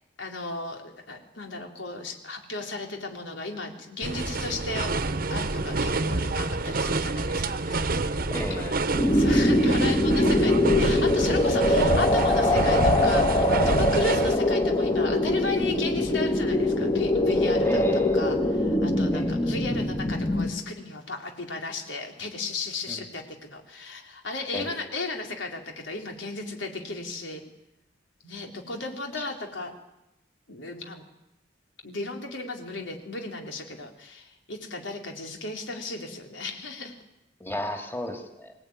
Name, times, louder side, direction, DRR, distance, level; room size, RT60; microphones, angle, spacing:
voice 1, 0.2-4.9 5.3-8.2 8.5-27.4 28.2-29.7 30.5-31.0 31.8-37.0, left 3 dB, 90° left, 2 dB, 4.0 m, -35 dB
sound 1, 4.0-14.4, right 2 dB, 50° right, 1.1 m, -28 dB
voice 2, 8.3-8.7 17.6-18.2 19.1-19.3 22.9-23.0 24.5-24.8 29.2-29.3 37.4-38.5, left 1 dB, 10° left, 3 dB, 2.8 m, -34 dB
sound 2, 9.0-20.5, left 1 dB, 25° left, 2.1 m, -23 dB
25.0 x 18.5 x 9.7 m, 0.92 s
head